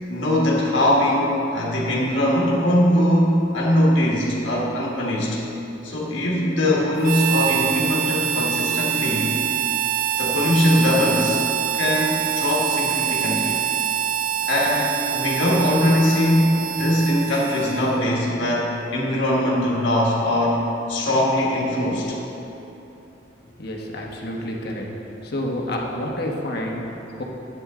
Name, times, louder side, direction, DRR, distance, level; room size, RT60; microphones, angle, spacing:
voice 1, 0.1-5.4 5.8-9.3 10.2-11.4 11.7-13.6 14.4-22.2, left 1 dB, 90° left, -4 dB, 1.7 m, -21 dB
Harmonica, 7.0-18.1, right 10 dB, 45° right, 0.4 m, -25 dB
voice 2, 23.4-24.9 25.2-27.2, left 1 dB, 60° left, -1 dB, 1.3 m, -29 dB
10.5 x 9.1 x 3.8 m, 3.0 s
head